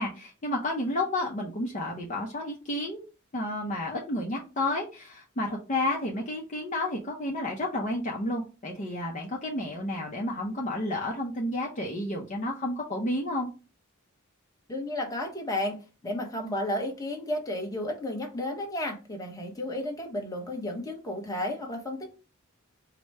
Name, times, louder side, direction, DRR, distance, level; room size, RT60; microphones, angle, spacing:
voice 1, 0.0-3.1 3.3-13.5, left 1 dB, 35° left, -2 dB, 0.7 m, -31 dB
voice 2, 14.7-22.1, left 1 dB, 15° left, 1 dB, 1.0 m, -33 dB
4.8 x 2.1 x 4.7 m, 0.32 s
head